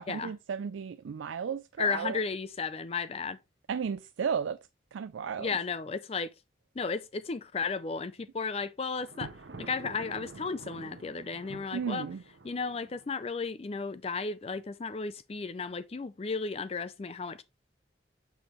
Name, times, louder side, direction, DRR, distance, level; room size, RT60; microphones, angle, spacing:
voice 1, 0.0-2.2 3.7-4.6 4.9-5.5 11.7-12.2, right 6 dB, 80° right, 0.4 m, -34 dB
voice 2, 1.8-3.4 5.4-6.3 6.8-9.3 9.6-12.1 12.4-17.4, left 4 dB, 30° left, 0.4 m, -34 dB
Thunder, 9.0-13.1, right 3 dB, 65° right, 0.8 m, -47 dB
7.0 x 5.9 x 3.0 m
head